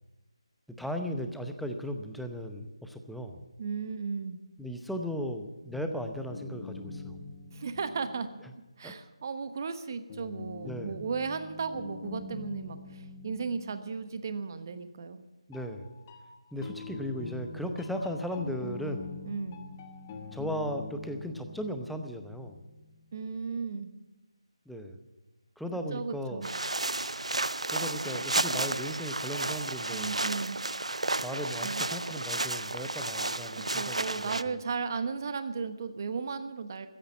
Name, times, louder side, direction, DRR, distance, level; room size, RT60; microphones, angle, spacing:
voice 1, 0.7-3.4 4.6-7.2 8.8-8.9 10.6-11.0 15.5-15.9 16.5-19.2 20.3-22.6 24.7-25.0 25.6-26.5 27.7-30.2 31.2-34.6, equal, ahead, 5 dB, 0.7 m, -36 dB
voice 2, 3.6-4.4 7.5-8.3 8.8-15.3 19.2-19.7 23.1-23.9 25.9-26.5 29.9-30.6 31.6-31.8 33.6-36.9, right 5 dB, 35° right, 10 dB, 1.1 m, -35 dB
sound 1, 5.7-8.8 10.1-14.7 15.5-23.2, left 4 dB, 20° left, 1.5 m, -45 dB
sound 2, 26.4-34.4, right 2 dB, 90° right, 0.5 m, -32 dB
15.0 x 10.0 x 9.5 m, 1.1 s
figure-of-eight pair, 165°, 3 cm